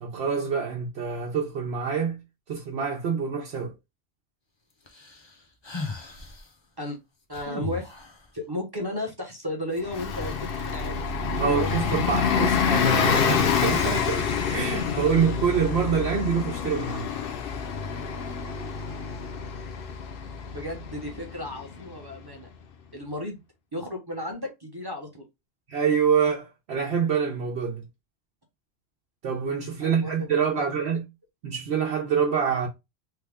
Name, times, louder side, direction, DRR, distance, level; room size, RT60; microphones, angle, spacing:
voice 1, 0.0-2.2 2.5-3.7 11.4-17.2 25.7-27.9 29.2-31.0 31.4-32.7, right 6 dB, 75° right, 1.0 m, -26 dB
sound 1, 4.9-6.5 7.3-8.3 9.8-9.9 10.1-11.1 11.6-12.2, left 3 dB, 30° left, 0.6 m, -37 dB
voice 2, 7.3-7.9 8.3-11.0 11.4-11.7 20.5-22.5 22.9-23.4 23.7-25.2 29.8-30.3 30.6-30.7, left 1 dB, 25° right, 0.8 m, -34 dB
Bus, 9.8-22.1, left 6 dB, 65° left, 0.8 m, -27 dB
3.3 x 2.1 x 3.5 m
omnidirectional pair, 1.1 m